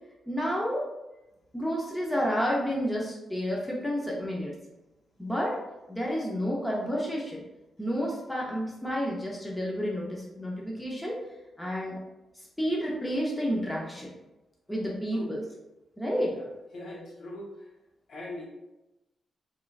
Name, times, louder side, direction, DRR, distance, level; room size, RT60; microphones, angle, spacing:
voice 1, 0.3-0.9 1.5-4.5 5.2-5.6 5.9-7.4 7.8-11.2 11.6-12.0 12.6-14.1 14.7-15.4 16.0-16.3, equal, 5° left, -4 dB, 0.5 m, -30 dB
voice 2, 16.7-17.7 18.1-18.5, left 1 dB, 55° left, -2 dB, 0.8 m, -41 dB
3.6 x 3.0 x 2.4 m, 0.97 s
wide cardioid pair, 165°, 0 cm